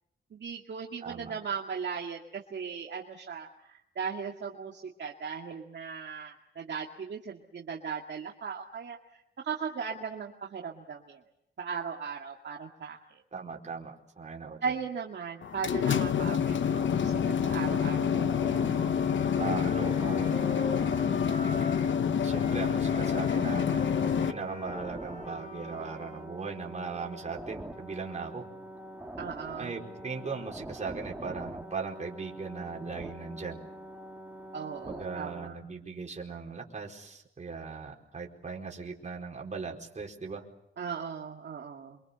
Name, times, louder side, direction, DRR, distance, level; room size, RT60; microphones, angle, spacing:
voice 1, 0.3-9.0 9.4-11.2 11.6-13.2 14.6-18.9 29.2-29.7 34.5-35.5 40.8-42.0, right 6 dB, 60° right, 0 dB, 2.2 m, -38 dB
voice 2, 1.0-1.3 13.3-14.7 19.4-21.1 22.2-28.5 29.6-33.7 34.9-40.4, right 5 dB, 35° right, 0 dB, 4.6 m, -39 dB
sound 1, 15.4-24.3, left 7 dB, 70° left, 1.0 m, -27 dB
sound 2, 16.8-35.5, right 1 dB, 10° right, 2.2 m, -45 dB
Wind instrument woodwind instrument, 18.4-22.0 22.3-26.3, left 4 dB, 35° left, 5.0 m, -42 dB
28.0 x 24.5 x 7.0 m, 0.79 s
wide cardioid pair, 135°, 20 cm